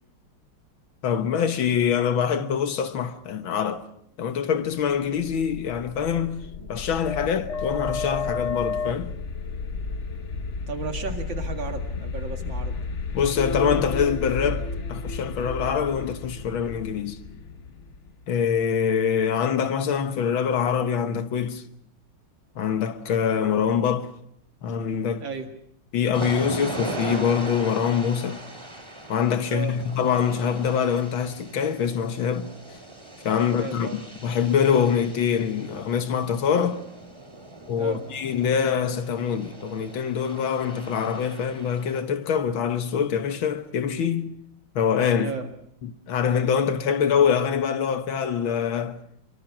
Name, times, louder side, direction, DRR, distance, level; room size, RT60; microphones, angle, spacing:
voice 1, 1.0-3.8 4.2-9.1 13.1-17.2 18.3-21.6 22.6-24.1 24.6-25.2 25.9-28.4 29.1-32.5 33.2-36.8 37.7-44.3 44.8-45.3 45.8-49.0, left 7 dB, 75° left, 2.0 m, -24 dB
sound 1, 5.2-18.7, left 4 dB, 40° left, 1.2 m, -32 dB
voice 2, 10.7-12.8 25.2-25.5 29.5-29.8 33.5-34.0 37.8-38.0 45.2-45.5, right 5 dB, 65° right, 2.8 m, -34 dB
sound 2, 26.1-42.0, right 1 dB, 15° right, 2.5 m, -39 dB
23.5 x 23.5 x 6.0 m
omnidirectional pair, 2.3 m